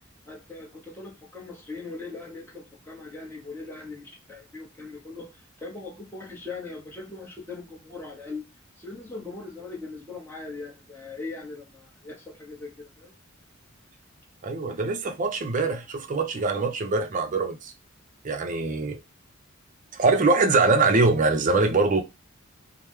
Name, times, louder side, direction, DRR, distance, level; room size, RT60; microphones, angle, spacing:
voice 1, 0.3-8.4 8.8-13.1, left 3 dB, 10° left, 0.9 m, -40 dB
voice 2, 14.4-17.7 18.2-19.0 19.9-22.0, right 3 dB, 40° right, 0.5 m, -23 dB
3.0 x 2.0 x 3.5 m
head